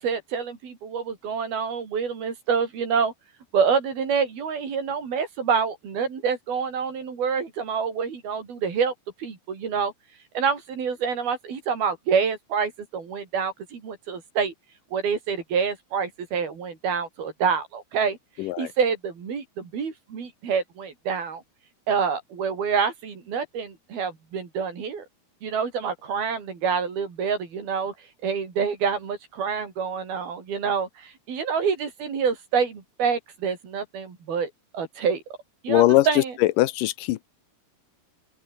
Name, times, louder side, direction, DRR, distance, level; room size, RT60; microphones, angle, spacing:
voice 1, 0.0-3.1 3.5-8.9 9.2-9.9 10.3-14.5 14.9-18.2 18.6-21.4 21.9-25.0 25.4-35.2 35.6-36.3, right 6 dB, 85° right, 6.4 m, -27 dB
voice 2, 18.4-18.7 35.7-36.1 36.6-37.3, left 16 dB, 75° left, 2.2 m, -20 dB
open air
omnidirectional pair, 4.2 m